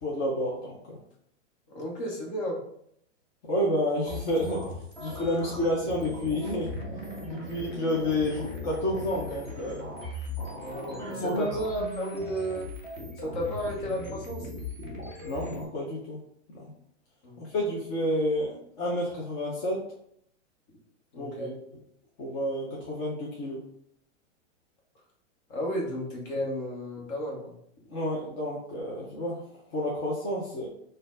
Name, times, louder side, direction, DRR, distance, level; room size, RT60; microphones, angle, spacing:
voice 1, 0.0-1.0 3.5-4.7 5.0-6.7 7.3-9.9 11.0-11.5 15.2-16.2 16.5-16.7 17.4-19.8 21.2-21.6 22.2-23.6 27.9-29.4 29.7-30.7, left 1 dB, 25° left, -4 dB, 0.7 m, -30 dB
voice 2, 1.7-2.6 10.6-12.7 13.2-14.5 17.2-17.4 21.1-21.5 25.5-27.6, equal, 45° left, -1 dB, 1.3 m, -33 dB
sound 1, 4.0-15.6, left 1 dB, 10° left, 0.3 m, -38 dB
4.2 x 2.6 x 3.8 m, 0.70 s
hypercardioid pair, 155°, 38 cm